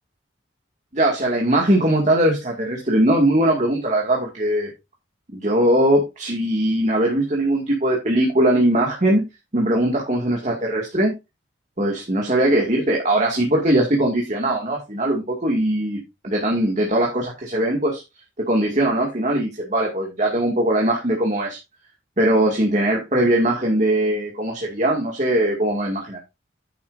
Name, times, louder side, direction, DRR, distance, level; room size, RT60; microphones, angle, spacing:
voice 1, 0.9-4.7 5.3-9.2 9.5-11.1 11.8-16.0 16.2-18.0 18.5-21.6 22.2-26.2, right 1 dB, 40° right, -1 dB, 2.2 m, -20 dB
10.5 x 8.7 x 2.6 m, 0.24 s
head